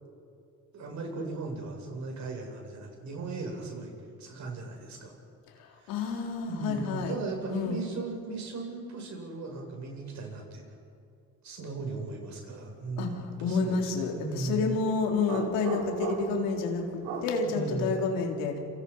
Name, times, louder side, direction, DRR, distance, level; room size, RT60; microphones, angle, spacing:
voice 1, 0.7-3.9 4.2-5.1 5.8-10.6 11.4-14.8 17.4-18.0, right 3 dB, 55° right, 1 dB, 7.8 m, -37 dB
voice 2, 5.9-7.2 7.5-7.8 13.0-18.6, left 4 dB, 85° left, 1 dB, 4.1 m, -29 dB
sound 1, 15.2-16.5 17.0-17.4, right 4 dB, 80° right, 4.6 m, -35 dB
28.0 x 27.0 x 5.7 m, 2.5 s
supercardioid pair, 80°, 33 cm